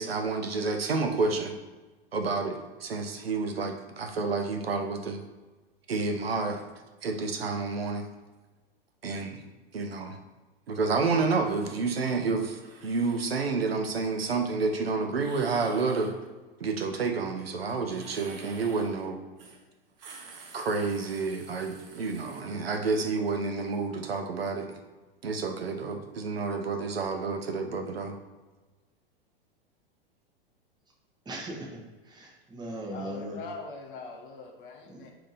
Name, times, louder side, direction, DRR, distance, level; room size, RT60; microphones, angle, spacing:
voice 1, 0.0-1.5 2.1-5.2 5.9-6.6 7.0-8.1 9.0-9.4 9.7-10.2 10.7-16.1 16.6-19.2 20.5-24.7 25.2-28.1, right 4 dB, 85° right, 4 dB, 0.6 m, -29 dB
sound 1, 11.5-11.8 12.5-13.4 15.1-16.2 17.8-19.0 19.4-19.6 19.9-22.4, right 4 dB, 50° right, 0.8 m, -49 dB
voice 2, 31.3-33.4 34.9-35.1, right 1 dB, 15° right, -1 dB, 0.9 m, -39 dB
voice 3, 32.9-35.1, left 3 dB, 60° left, 1 dB, 0.8 m, -42 dB
3.6 x 2.7 x 4.0 m, 1.2 s
figure-of-eight pair, 95°, 29 cm